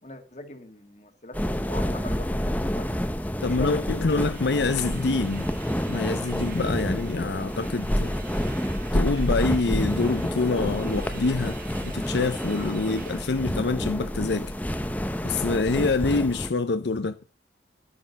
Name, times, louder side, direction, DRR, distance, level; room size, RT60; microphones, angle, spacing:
voice 1, 0.0-2.9 3.4-4.4, left 1 dB, 40° left, 1.7 m, -41 dB
sound 1, 1.3-16.5, equal, 10° left, 0.8 m, -28 dB
voice 2, 3.4-5.5 5.9-8.1 8.9-14.5 15.2-17.2, left 3 dB, 80° left, 0.6 m, -26 dB
sound 2, 4.1-13.7, right 6 dB, 50° right, 1.2 m, -47 dB
10.0 x 10.0 x 5.2 m
head